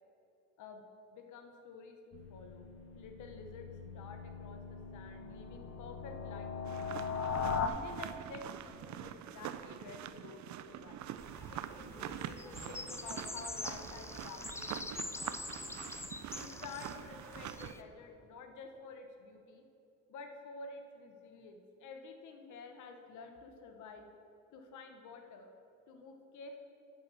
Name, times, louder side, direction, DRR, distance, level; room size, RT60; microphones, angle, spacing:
voice 1, 1.1-2.7 2.9-7.1 7.6-11.0 11.5-15.8 16.3-19.6 20.1-24.1 24.5-25.5 25.9-26.6, left 4 dB, 80° left, 5 dB, 1.0 m, -50 dB
sound 1, 2.1-7.7, left 6 dB, 55° left, 0.7 m, -39 dB
sound 2, 6.6-17.7, right 11 dB, 70° right, 0.5 m, -45 dB
sound 3, 11.2-17.8, left 2 dB, 10° left, 0.3 m, -45 dB
9.2 x 6.1 x 6.7 m, 2.9 s
cardioid pair, 90°, 30 cm